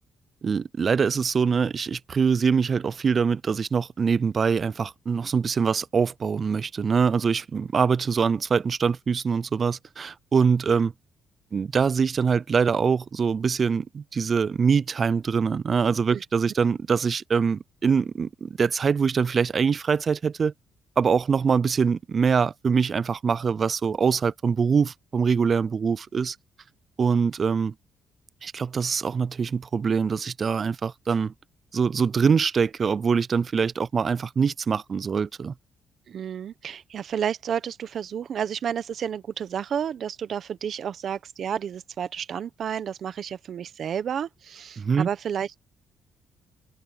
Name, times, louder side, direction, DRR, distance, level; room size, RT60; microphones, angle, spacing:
voice 1, 0.4-10.9 11.5-20.5 21.0-26.4 27.0-27.7 28.4-31.3 31.7-35.5 44.8-45.1, right 6 dB, 40° right, 0.3 m, -24 dB
voice 2, 36.1-45.6, right 8 dB, 55° right, 1.0 m, -31 dB
cardioid pair, 105°, 0 cm